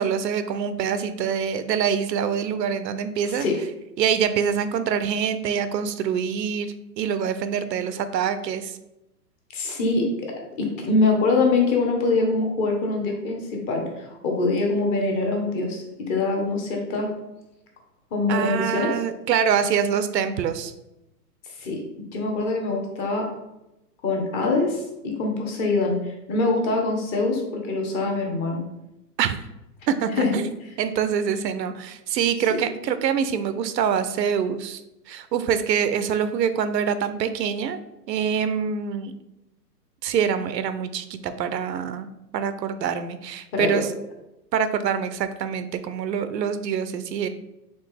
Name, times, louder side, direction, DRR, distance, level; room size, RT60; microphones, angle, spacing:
voice 1, 0.0-3.5 4.0-8.7 18.3-20.7 29.2-29.4 29.9-30.5 30.8-34.8 35.1-37.8 38.1-39.1 40.0-43.9 44.5-47.3, right 7 dB, 80° right, 11 dB, 0.6 m, -25 dB
voice 2, 9.5-10.1 10.6-17.1 18.1-18.9 21.5-21.8 22.1-23.3 24.0-28.6 30.2-30.3 43.5-43.8, left 3 dB, 25° left, 0 dB, 0.9 m, -24 dB
4.3 x 3.6 x 3.3 m, 0.91 s
hypercardioid pair, 140°, 49 cm